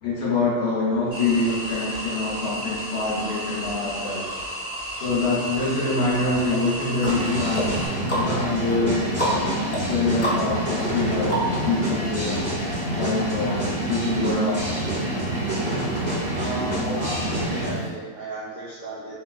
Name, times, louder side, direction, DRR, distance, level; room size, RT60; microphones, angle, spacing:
voice 1, 0.0-4.3 5.0-7.8 8.1-12.5 12.9-14.8 16.8-17.0, left 3 dB, 60° left, -6 dB, 0.7 m, -25 dB
sound 1, 1.1-7.9, equal, 55° right, 1.8 m, -33 dB
sound 2, 6.5-11.9 12.3-12.4, equal, 15° left, 0.4 m, -30 dB
sound 3, 7.0-17.8, right 1 dB, 15° right, 1.0 m, -27 dB
voice 2, 16.3-19.2, right 2 dB, 85° right, -6 dB, 0.4 m, -35 dB
3.3 x 3.1 x 2.2 m, 1.5 s
omnidirectional pair, 1.6 m